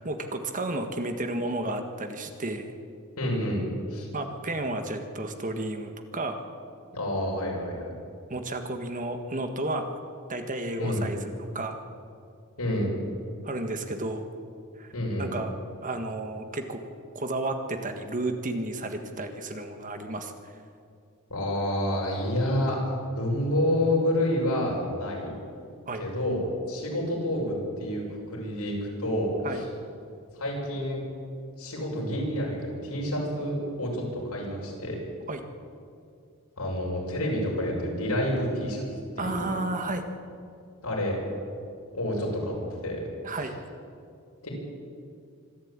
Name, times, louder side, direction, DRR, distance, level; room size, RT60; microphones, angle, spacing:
voice 1, 0.0-2.7 4.1-6.4 8.3-10.0 10.3-11.8 13.4-14.2 14.8-14.9 15.2-15.5 15.8-16.8 17.1-20.5 25.9-26.0 29.4-29.6 35.3-35.4 39.2-40.0 43.2-43.6, right 2 dB, 35° right, 6 dB, 1.6 m, -32 dB
voice 2, 3.2-3.6 3.9-4.1 6.9-7.9 10.8-11.0 12.6-12.9 14.9-15.3 21.3-22.8 23.1-25.3 25.9-29.6 30.3-31.0 31.6-35.0 36.6-38.8 39.2-39.4 40.8-41.2 41.9-43.0 44.4-44.5, left 1 dB, 90° left, -2 dB, 6.6 m, -28 dB
25.5 x 12.5 x 8.9 m, 2.4 s
head